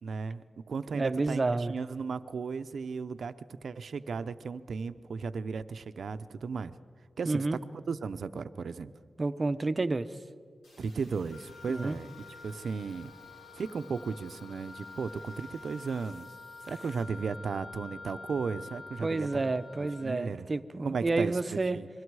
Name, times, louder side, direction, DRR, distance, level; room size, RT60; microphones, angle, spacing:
voice 1, 0.0-3.3 3.6-6.7 7.2-8.9 10.8-12.1 12.4-13.1 13.5-16.3 16.6-20.5 20.8-21.9, right 5 dB, 70° right, 12 dB, 0.6 m, -35 dB
voice 2, 0.9-1.7 7.3-7.6 9.2-10.2 11.7-12.0 19.0-21.8, right 3 dB, 35° right, 12 dB, 0.7 m, -30 dB
sound 1, 10.6-17.0, left 1 dB, 85° left, 4.9 m, -59 dB
Wind instrument woodwind instrument, 11.3-20.2, left 3 dB, 45° left, 4.2 m, -48 dB
27.5 x 22.0 x 4.8 m, 2.2 s
wide cardioid pair, 95°, 0 cm